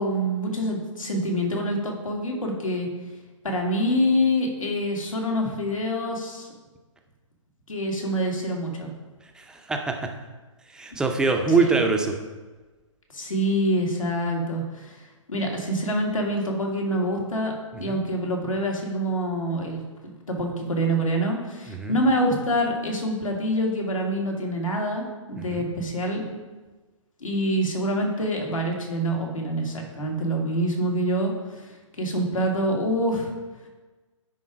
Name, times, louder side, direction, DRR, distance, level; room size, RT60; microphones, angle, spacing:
voice 1, 0.0-2.9 3.4-6.5 7.7-8.9 13.1-15.0 15.3-26.4 27.2-31.7 32.0-33.3, equal, 80° left, 0 dB, 1.9 m, -26 dB
voice 2, 9.4-10.0 10.7-12.1 17.9-18.0 21.7-22.0 25.4-25.7, right 4 dB, 5° right, 3 dB, 0.4 m, -24 dB
9.8 x 3.8 x 4.8 m, 1.3 s
figure-of-eight pair, 130°, 17 cm